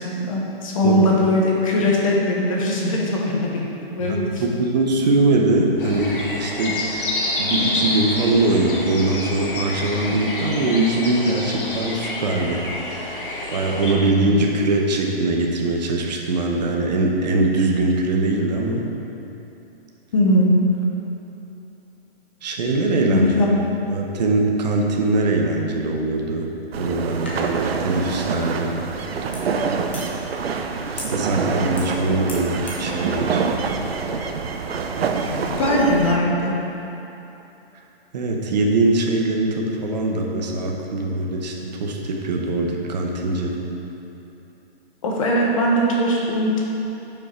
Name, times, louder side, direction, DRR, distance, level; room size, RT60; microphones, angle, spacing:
voice 1, 0.0-3.6 3.9-4.4 14.3-14.4 20.1-20.5 23.1-23.5 35.3-36.5 45.0-46.6, left 1 dB, 35° left, -2 dB, 1.1 m, -20 dB
voice 2, 4.0-7.1 7.4-12.6 13.0-18.9 22.4-23.3 23.9-26.5 26.8-28.7 31.0-33.5 38.1-41.5 41.8-43.5, right 2 dB, 45° right, 1 dB, 1.0 m, -22 dB
sound 1, 5.8-13.9, left 2 dB, 55° left, 1.7 m, -28 dB
sound 2, 26.7-36.2, right 5 dB, 70° right, 0.7 m, -26 dB
sound 3, 27.1-32.9, left 1 dB, 10° left, 0.4 m, -40 dB
8.8 x 5.6 x 4.4 m, 3.0 s
hypercardioid pair, 170°, 31 cm